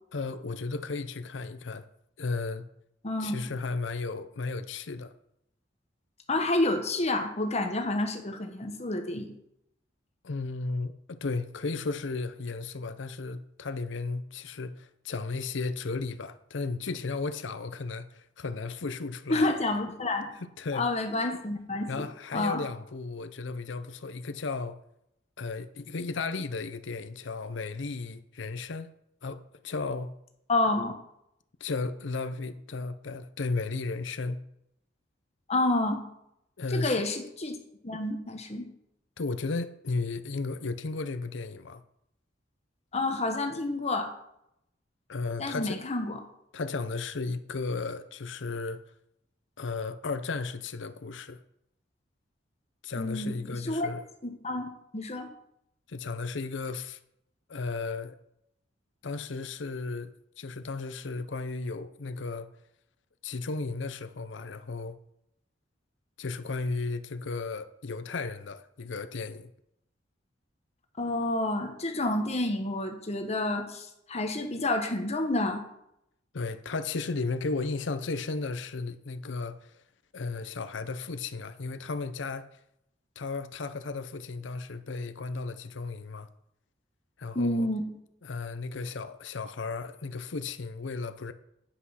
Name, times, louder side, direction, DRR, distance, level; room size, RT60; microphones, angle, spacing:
voice 1, 0.1-1.9 2.2-2.6 3.2-5.1 10.2-19.5 20.4-20.9 21.9-24.8 25.4-28.9 29.2-30.1 31.6-34.4 36.6-37.0 39.2-41.8 45.1-45.8 46.5-48.8 49.6-51.4 52.8-54.1 55.9-57.0 57.5-58.2 59.0-62.5 63.2-64.9 66.2-69.5 76.3-79.8 80.1-82.5 83.2-86.3 87.2-87.7 88.2-91.3, left 3 dB, 75° left, 0.7 m, -34 dB
voice 2, 3.0-3.3 6.3-9.4 19.3-20.3 20.7-22.1 22.3-22.6 30.5-30.9 35.5-36.0 36.7-37.6 37.8-38.7 42.9-44.1 45.4-46.2 53.0-53.9 54.2-55.3 71.0-75.6 87.3-87.8, left 2 dB, 35° left, 1.2 m, -29 dB
10.0 x 6.2 x 5.7 m
head